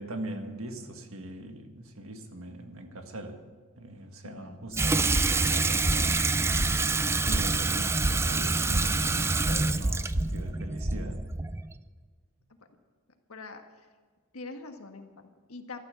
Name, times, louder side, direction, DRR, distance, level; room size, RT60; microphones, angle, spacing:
voice 1, 0.0-3.4 3.8-6.2 7.2-11.2, right 1 dB, 70° right, 5 dB, 1.7 m, -41 dB
voice 2, 4.2-4.6 13.3-13.9 14.3-15.8, left 3 dB, 80° left, 5 dB, 1.5 m, -44 dB
Water tap faucet / Sink (filling or washing), 4.7-11.8, right 3 dB, 10° right, 0.3 m, -27 dB
sound 1, 5.0-11.4, right 1 dB, 35° right, 1.1 m, -33 dB
13.5 x 12.5 x 7.1 m, 1.5 s
head